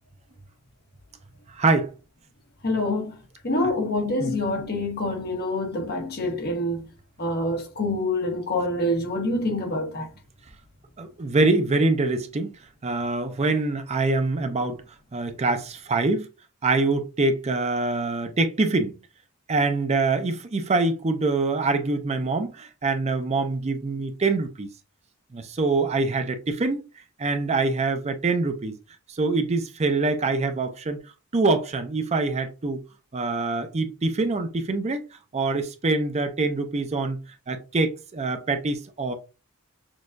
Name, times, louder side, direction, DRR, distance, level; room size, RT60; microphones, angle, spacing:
voice 1, 1.6-1.9 4.2-4.4 11.0-12.6 12.8-14.8 15.1-16.3 16.6-18.9 19.5-24.7 25.3-26.8 27.2-28.7 29.1-31.0 31.3-32.8 33.1-35.0 35.3-37.2 37.5-39.1, right 3 dB, 30° right, 0.5 m, -24 dB
voice 2, 2.6-3.1 3.4-6.8 7.2-10.1, left 1 dB, 50° left, 1.1 m, -26 dB
6.2 x 2.3 x 2.5 m
head